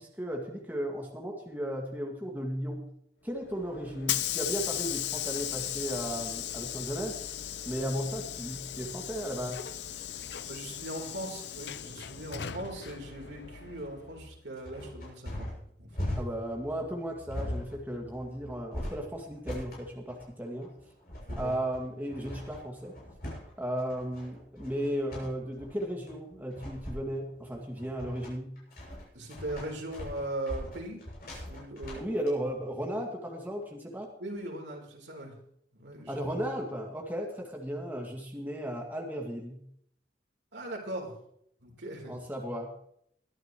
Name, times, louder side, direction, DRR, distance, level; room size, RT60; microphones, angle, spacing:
voice 1, 0.0-2.9 3.2-7.2 7.7-9.6 16.2-20.7 21.4-22.9 23.6-28.6 32.0-34.1 36.1-39.7 42.1-42.7, equal, 10° right, -1 dB, 2.0 m, -35 dB
Hiss / Sliding door, 3.4-14.2, left 11 dB, 75° left, 0.6 m, -37 dB
voice 2, 10.5-15.5 15.8-16.1 21.3-21.5 29.1-31.0 31.4-32.1 34.2-35.4 35.7-36.2 40.5-41.1 41.6-42.1, right 1 dB, 85° right, 0 dB, 3.7 m, -39 dB
sound 1, 13.7-32.3, left 1 dB, 55° left, 6.8 m, -40 dB
21.5 x 11.0 x 3.1 m, 0.70 s
head